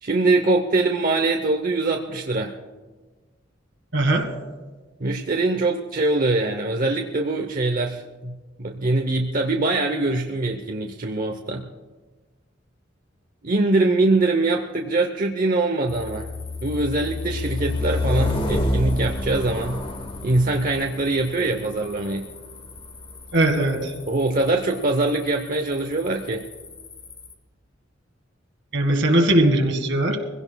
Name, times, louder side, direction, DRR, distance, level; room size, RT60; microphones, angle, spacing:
voice 1, 0.0-2.6 5.0-11.6 13.4-16.3 16.6-19.8 20.2-22.3 24.1-26.4, right 2 dB, 45° right, 3 dB, 0.8 m, -23 dB
voice 2, 3.9-4.3 23.3-23.9 28.7-30.2, right 1 dB, 75° right, 4 dB, 1.8 m, -19 dB
sound 1, 15.9-27.3, left 2 dB, 30° left, 1.0 m, -30 dB
23.0 x 16.5 x 2.3 m, 1.3 s
head